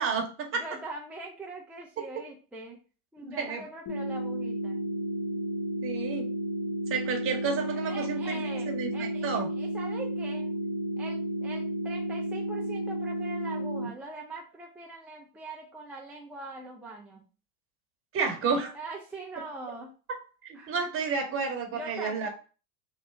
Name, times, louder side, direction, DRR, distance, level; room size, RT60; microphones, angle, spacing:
voice 1, 0.0-0.6 2.0-2.1 3.2-3.6 5.8-6.3 6.9-8.4 8.7-9.5 18.1-18.7 20.4-22.3, right 5 dB, 30° right, 4 dB, 0.9 m, -31 dB
voice 2, 0.5-2.8 3.1-4.8 7.6-10.5 11.0-17.2 18.7-19.9 20.5-20.7 21.7-22.3, right 2 dB, 5° right, -3 dB, 0.3 m, -42 dB
sound 1, 3.9-13.9, equal, 50° left, 1.8 m, -32 dB
3.3 x 2.8 x 3.3 m, 0.36 s
hypercardioid pair, 100°, 42 cm